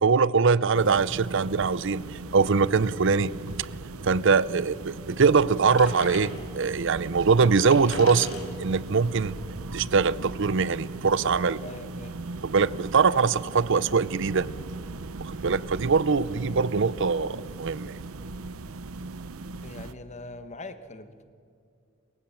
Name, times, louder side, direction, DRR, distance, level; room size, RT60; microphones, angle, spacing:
voice 1, 0.0-3.3 4.0-8.3 8.6-9.3 9.7-11.6 12.4-14.5 15.2-18.0, right 5 dB, 60° right, 19 dB, 0.6 m, -23 dB
sound 1, 0.7-19.9, right 3 dB, 85° right, 0.9 m, -39 dB
sound 2, 5.7-6.8 7.3-7.4 7.6-10.6, left 2 dB, 85° left, 4.2 m, -40 dB
voice 2, 11.6-12.1 19.6-21.2, left 2 dB, 35° left, 10 dB, 1.2 m, -42 dB
28.5 x 15.5 x 7.3 m, 2.5 s
head